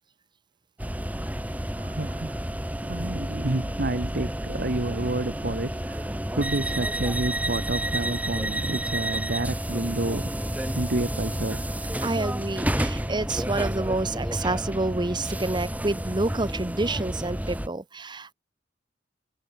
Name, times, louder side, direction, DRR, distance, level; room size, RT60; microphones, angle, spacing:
sound 1, 0.8-17.7, right 1 dB, 10° right, 3.0 m, -30 dB
voice 1, 1.8-2.4 2.8-10.3 10.7-11.7, right 2 dB, 60° right, 1.4 m, -30 dB
voice 2, 12.0-18.3, right 2 dB, 25° right, 0.9 m, -28 dB
head